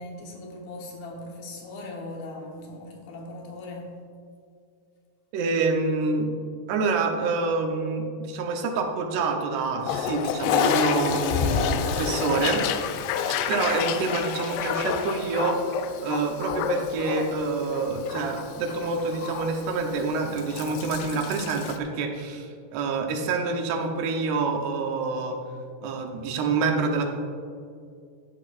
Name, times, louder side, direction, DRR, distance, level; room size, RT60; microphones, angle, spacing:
voice 1, 0.0-4.0, left 2 dB, 70° left, 0 dB, 2.9 m, -39 dB
voice 2, 5.3-6.3 6.7-12.8 13.5-15.6 16.0-25.4 25.8-27.2, right 4 dB, 80° right, 3 dB, 3.0 m, -27 dB
Toilet flush, 9.8-21.8, left 7 dB, 85° left, 2.7 m, -29 dB
13.0 x 11.0 x 2.5 m, 2.2 s
omnidirectional pair, 4.7 m